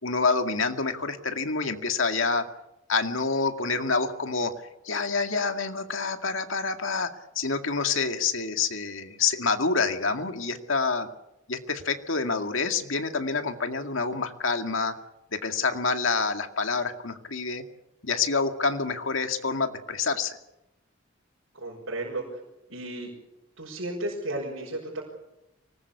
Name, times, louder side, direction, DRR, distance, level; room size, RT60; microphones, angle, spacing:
voice 1, 0.0-2.4 2.9-4.5 4.8-7.1 7.4-11.1 11.5-14.9 15.3-17.6 18.0-20.4, left 4 dB, 70° left, 6 dB, 2.1 m, -27 dB
voice 2, 21.5-22.4 22.7-23.1 23.6-25.0, right 1 dB, 75° right, -2 dB, 5.7 m, -33 dB
25.0 x 19.5 x 8.4 m, 0.90 s
head